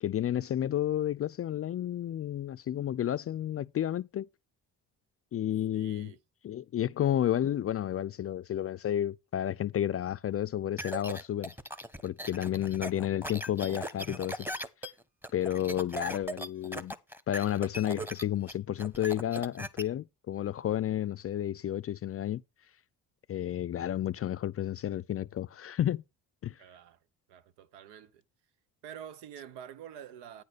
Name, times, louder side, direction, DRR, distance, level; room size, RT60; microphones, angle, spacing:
voice 1, 0.0-4.3 5.3-6.1 6.4-11.5 12.0-14.5 15.3-17.0 17.3-22.4 23.3-26.0 26.4-26.6, left 11 dB, 35° left, 0.4 m, -31 dB
voice 2, 5.7-6.2 26.6-27.0 27.3-28.2 28.8-30.4, right 9 dB, 85° right, 0.9 m, -47 dB
sound 1, 10.8-19.8, right 1 dB, 5° right, 1.1 m, -39 dB
9.4 x 4.0 x 6.7 m
supercardioid pair, 65°, 40 cm